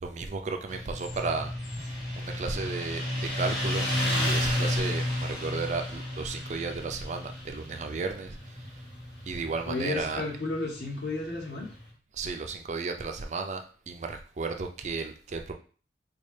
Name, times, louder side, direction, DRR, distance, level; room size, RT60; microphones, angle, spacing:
voice 1, 0.0-1.5 1.9-8.6 9.3-10.2 12.1-15.5, right 4 dB, 40° right, 5 dB, 0.4 m, -34 dB
Motorcycle, 0.7-11.8, left 1 dB, 90° left, 1.9 m, -32 dB
voice 2, 9.7-11.7, left 2 dB, 70° left, -2 dB, 1.2 m, -32 dB
4.2 x 2.2 x 3.2 m, 0.40 s
head